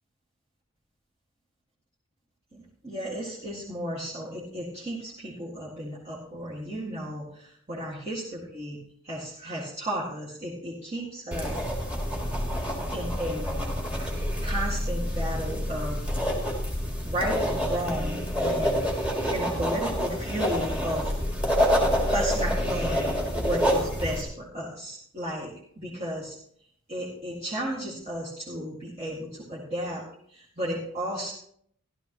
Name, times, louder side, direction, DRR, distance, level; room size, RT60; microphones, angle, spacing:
voice 1, 2.5-8.8 9.0-11.6 12.9-13.5 14.4-16.2 17.0-18.8 19.3-21.1 22.1-26.4 26.9-31.3, equal, 30° right, -7 dB, 2.1 m, -34 dB
sound 1, 11.3-24.2, equal, 5° right, 1.9 m, -27 dB
15.0 x 12.0 x 3.0 m, 0.66 s
head